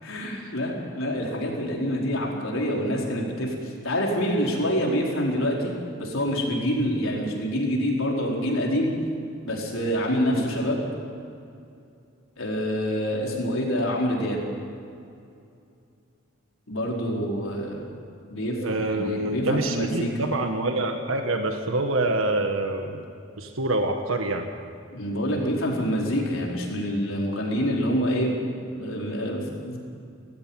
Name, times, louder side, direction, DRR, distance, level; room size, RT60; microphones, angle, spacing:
voice 1, 0.0-5.7 6.0-8.9 9.4-10.8 12.4-14.4 16.7-17.9 18.3-20.1 24.9-28.3 28.8-29.8, equal, 80° left, -2 dB, 4.5 m, -26 dB
voice 2, 18.6-23.1 23.4-24.4, right 2 dB, 80° right, 5 dB, 1.5 m, -26 dB
19.0 x 16.0 x 8.9 m, 2.5 s
head